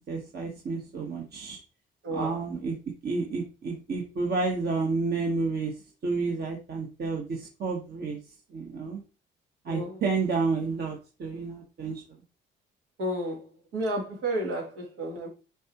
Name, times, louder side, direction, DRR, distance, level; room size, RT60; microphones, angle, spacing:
voice 1, 0.1-1.6 2.1-5.7 6.0-8.2 8.5-9.0 9.6-12.0, right 4 dB, 55° right, 1.3 m, -30 dB
voice 2, 2.0-2.4 9.7-10.0 13.0-13.4 13.7-15.3, right 1 dB, 90° right, 3.0 m, -31 dB
7.1 x 4.7 x 3.0 m
cardioid pair, 90°, 20 cm